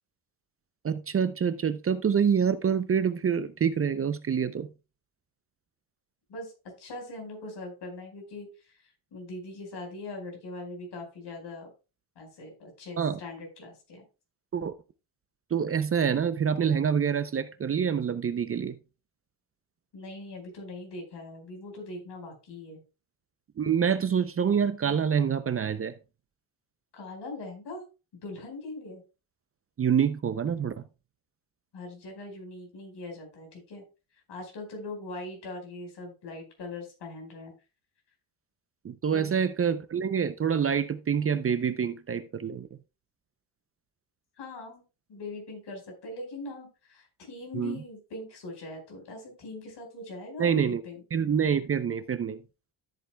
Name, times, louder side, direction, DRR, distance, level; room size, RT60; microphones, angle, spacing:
voice 1, 0.8-4.7 13.0-13.2 14.5-14.7 15.5-18.8 23.6-25.9 29.8-30.8 38.8-42.7 47.5-47.8 50.4-50.8 51.1-52.4, right 7 dB, 30° right, 0.6 m, -26 dB
voice 2, 6.8-11.7 12.1-14.0 19.9-22.8 26.9-27.8 28.2-29.0 31.7-33.8 34.3-37.5 39.1-39.3 44.4-44.8 45.1-51.0, left 2 dB, 60° left, 4.9 m, -41 dB
13.5 x 8.1 x 2.3 m
cardioid pair, 125°, 46 cm